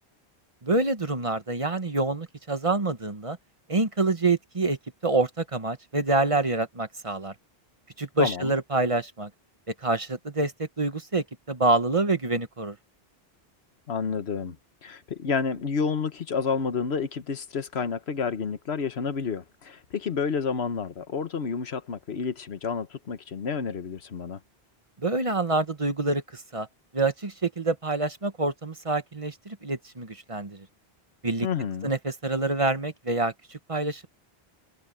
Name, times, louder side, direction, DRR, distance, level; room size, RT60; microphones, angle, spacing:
voice 1, 0.6-3.4 3.7-4.8 5.0-7.3 8.0-9.3 9.8-12.8 25.0-26.7 26.9-30.6 31.2-31.5 31.8-34.1, right 3 dB, 35° right, 1.2 m, -26 dB
voice 2, 8.2-8.5 13.9-14.6 14.8-24.4 31.4-31.9, left 5 dB, 85° left, 1.4 m, -30 dB
omnidirectional pair, 1.0 m